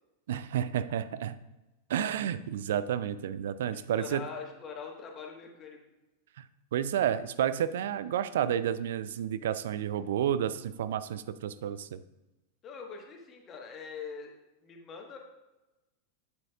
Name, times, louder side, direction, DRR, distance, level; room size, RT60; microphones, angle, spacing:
voice 1, 0.3-1.4 1.9-4.3 6.4-6.5 6.7-12.0, right 9 dB, 60° right, 14 dB, 0.4 m, -31 dB
voice 2, 3.7-5.8 12.6-14.3 14.6-15.2, left 6 dB, 30° left, 2 dB, 1.4 m, -43 dB
8.6 x 7.5 x 2.4 m, 1.0 s
figure-of-eight pair, 90°, 0 cm